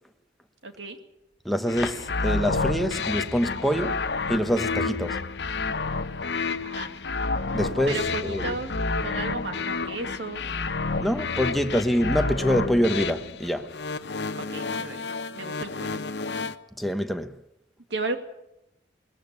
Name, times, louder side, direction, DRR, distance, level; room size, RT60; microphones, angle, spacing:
voice 1, 0.6-1.0 6.6-6.9 7.9-8.7 9.0-10.4 14.3-15.1 15.3-16.0 17.9-18.2, right 3 dB, 85° right, 2.4 m, -34 dB
voice 2, 1.4-4.0 4.3-5.2 7.5-8.5 11.0-13.7 16.8-17.3, equal, ahead, 1.0 m, -25 dB
sound 1, 1.7-16.6, left 3 dB, 70° left, 0.9 m, -30 dB
20.5 x 14.0 x 9.7 m
head